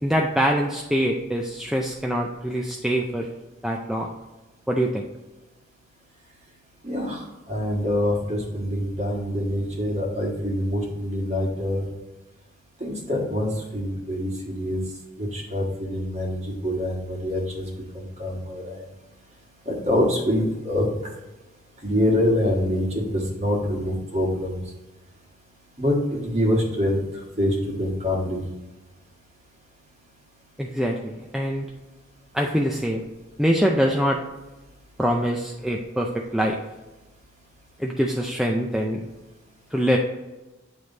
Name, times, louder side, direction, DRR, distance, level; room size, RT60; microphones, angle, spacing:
voice 1, 0.0-3.3 3.6-4.1 4.7-5.1 30.6-31.7 32.3-33.1 33.4-34.2 35.0-36.6 37.8-39.0 39.7-40.0, equal, 5° right, 0 dB, 0.3 m, -24 dB
voice 2, 6.8-11.9 12.8-14.8 15.2-17.7 17.9-18.8 19.6-20.9 21.8-24.6 25.8-27.0 27.4-28.4, left 1 dB, 35° right, -2 dB, 1.5 m, -25 dB
8.8 x 3.3 x 3.9 m, 1.1 s
head